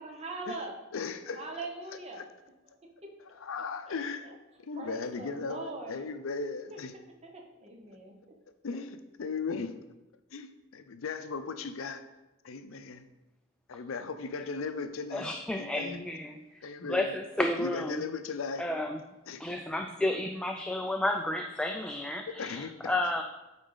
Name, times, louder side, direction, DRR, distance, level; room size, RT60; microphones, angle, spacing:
voice 1, 0.0-0.8 1.3-2.2 3.9-4.3 4.8-6.1 6.7-6.8 7.2-8.1, right 2 dB, 30° right, 2 dB, 1.0 m, -41 dB
voice 2, 0.9-1.7 2.2-2.3 3.3-4.3 4.6-7.0 8.6-9.8 10.3-12.0 12.4-13.1 13.7-16.0 16.6-18.6 19.3-19.4 22.4-22.9, left 4 dB, 70° left, 9 dB, 0.5 m, -37 dB
voice 3, 15.1-16.3 16.9-17.9 18.6-18.9 19.4-23.2, left 1 dB, 5° left, 3 dB, 0.3 m, -31 dB
8.8 x 4.0 x 3.9 m, 1.0 s
head